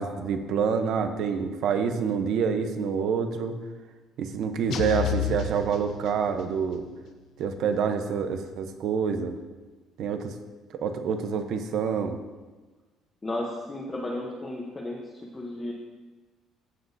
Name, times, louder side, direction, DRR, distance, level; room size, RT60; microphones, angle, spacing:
voice 1, 0.0-3.6 4.2-6.9 7.4-9.4 10.0-10.3 10.7-12.2, right 6 dB, 60° right, 7 dB, 0.8 m, -27 dB
sound 1, 4.7-6.6, left 8 dB, 55° left, 0.7 m, -31 dB
voice 2, 13.2-15.7, left 1 dB, 15° left, -2 dB, 0.8 m, -34 dB
15.0 x 6.1 x 2.7 m, 1.3 s
cardioid pair, 155°, 0 cm